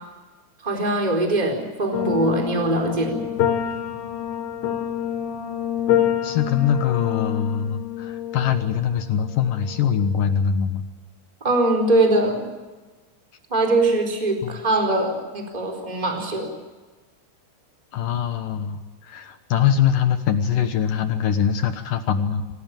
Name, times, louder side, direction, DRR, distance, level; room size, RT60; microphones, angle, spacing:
voice 1, 0.6-3.3 11.4-12.5 13.5-16.5, right 2 dB, 10° right, 3 dB, 3.9 m, -22 dB
sound 1, 1.9-10.3, left 10 dB, 90° left, 4.6 m, -27 dB
voice 2, 6.2-10.8 14.4-14.6 17.9-22.6, left 8 dB, 70° left, 8 dB, 2.2 m, -23 dB
26.5 x 16.5 x 9.0 m, 1.3 s
omnidirectional pair, 5.1 m